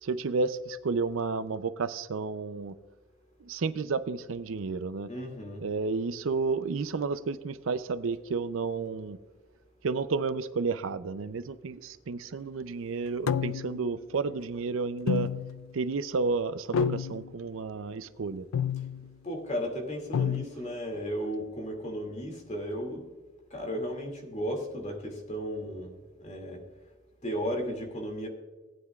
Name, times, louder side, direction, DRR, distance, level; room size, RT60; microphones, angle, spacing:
voice 1, 0.0-2.7 3.4-5.1 5.6-9.2 9.8-15.3 15.7-18.5, right 4 dB, 75° right, 13 dB, 0.5 m, -31 dB
voice 2, 5.1-5.7 19.2-23.1 23.5-25.9 26.2-26.6 27.2-28.3, equal, 35° left, 2 dB, 2.3 m, -34 dB
sound 1, 13.3-13.9 15.1-15.7 16.7-17.3 18.5-19.1 20.1-20.4, left 7 dB, 85° left, 0.4 m, -29 dB
18.0 x 9.5 x 2.3 m, 1.3 s
head